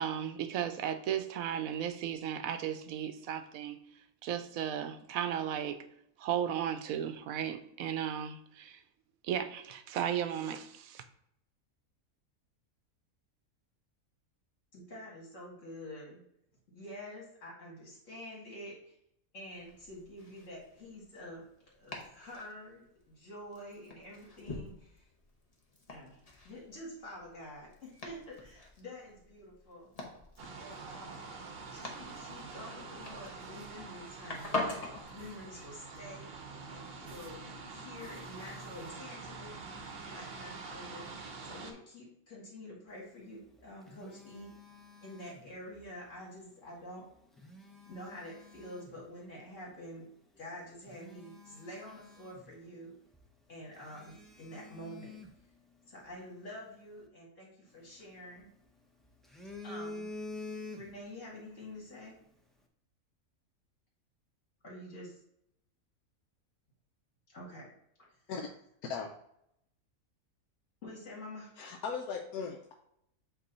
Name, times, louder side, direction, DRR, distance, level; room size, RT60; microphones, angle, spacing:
voice 1, 0.0-3.8 4.2-5.8 6.2-8.8 9.2-11.0, right 9 dB, 75° right, 9 dB, 1.0 m, -35 dB
voice 2, 14.7-16.2 16.7-18.9 19.3-21.5 21.7-25.1 25.9-29.9 30.6-31.3 31.7-34.5 35.1-36.3 36.7-37.4 37.7-39.6 40.1-41.1 41.4-44.5 45.0-47.1 47.9-50.1 50.4-52.9 53.5-55.2 55.9-58.5 59.6-60.1 60.7-62.2 64.6-65.2 67.3-67.7 70.8-71.5, left 1 dB, 55° left, -3 dB, 2.2 m, -48 dB
Domestic sounds home sounds, 19.5-35.0, left 2 dB, 30° left, 1.0 m, -45 dB
sound 1, 30.4-41.7, right 4 dB, 50° right, 0.9 m, -46 dB
Telephone, 43.3-45.9 47.1-49.0 49.7-49.8 50.4-50.5 50.8-52.9 53.1-53.3 53.8-56.1 57.7-58.7 59.0-61.2 61.5-61.7, left 2 dB, ahead, 0.4 m, -48 dB
voice 3, 68.8-69.1 71.6-72.7, left 5 dB, 80° left, 2 dB, 1.1 m, -38 dB
8.0 x 3.0 x 4.0 m, 0.75 s
omnidirectional pair, 1.5 m